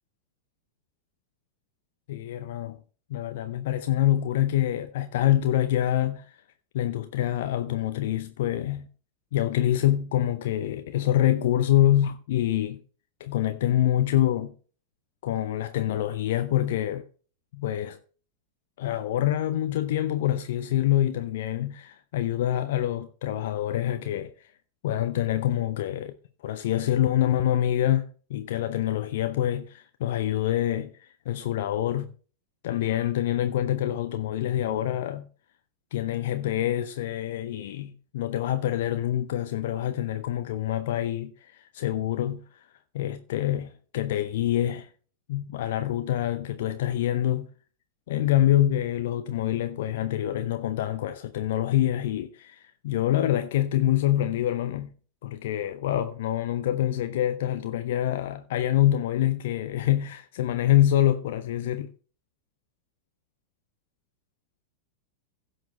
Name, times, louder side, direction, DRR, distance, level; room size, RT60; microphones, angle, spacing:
voice 1, 2.1-2.8 3.1-6.2 6.7-8.9 9.3-12.8 13.2-14.5 15.2-17.0 17.5-18.0 18.8-24.3 24.8-26.1 26.4-32.1 32.6-35.3 35.9-42.4 42.9-44.9 45.3-47.5 48.1-54.9 55.2-61.9, left 12 dB, 55° left, 0.7 m, -26 dB
16.0 x 5.9 x 3.2 m
figure-of-eight pair, 90°, 0 cm